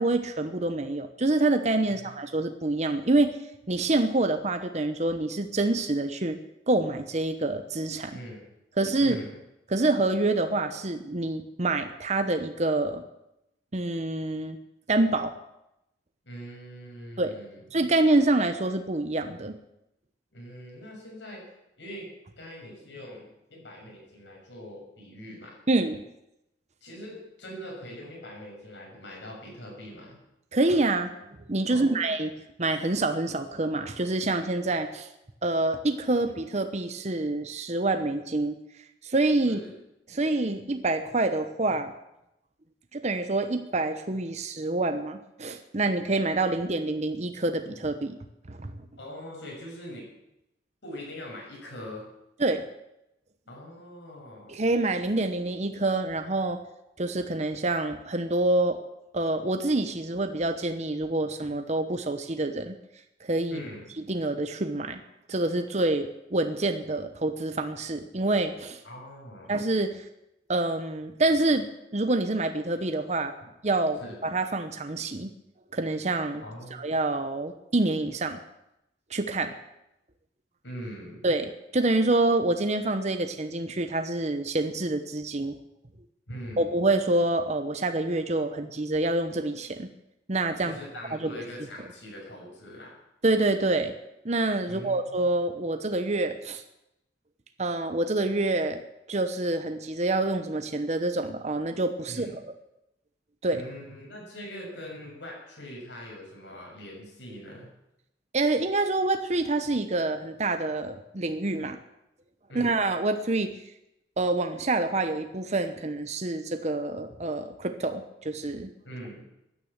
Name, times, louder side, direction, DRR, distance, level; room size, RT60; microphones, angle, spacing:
voice 1, 0.0-3.4 3.7-6.4 6.7-8.2 8.8-9.2 9.7-13.0 13.7-14.6 14.9-15.3 17.2-17.4 17.7-19.6 25.7-26.0 30.5-31.1 31.5-32.3 32.6-35.1 35.4-38.6 39.0-39.6 40.1-41.9 42.9-48.2 48.5-48.7 52.4-52.6 54.5-56.6 57.0-58.8 59.1-62.7 63.2-63.6 64.1-65.0 65.3-68.8 69.5-70.0 70.5-71.7 71.9-73.3 73.6-75.3 75.7-76.4 76.8-78.4 79.1-79.5 81.2-85.6 86.6-89.9 90.3-90.7 91.2-91.4 93.2-93.9 94.2-96.6 97.6-98.8 99.1-102.4 103.4-103.6 108.3-111.8 112.5-113.5 114.2-118.7, right 2 dB, 40° right, 8 dB, 0.9 m, -27 dB
voice 2, 8.1-8.4 9.0-9.4 16.2-17.6 20.3-21.5 21.8-22.1 22.4-25.5 26.8-30.2 31.7-32.3 39.5-39.7 49.0-50.1 50.8-52.0 53.5-54.6 63.5-63.8 68.8-69.6 74.0-74.2 76.4-76.9 80.6-81.2 86.3-86.6 88.5-88.6 90.6-93.0 94.7-95.2 102.0-102.3 103.5-107.7 112.5-112.7 118.8-119.2, equal, 75° left, -2 dB, 6.8 m, -42 dB
16.0 x 10.0 x 7.4 m, 0.86 s
head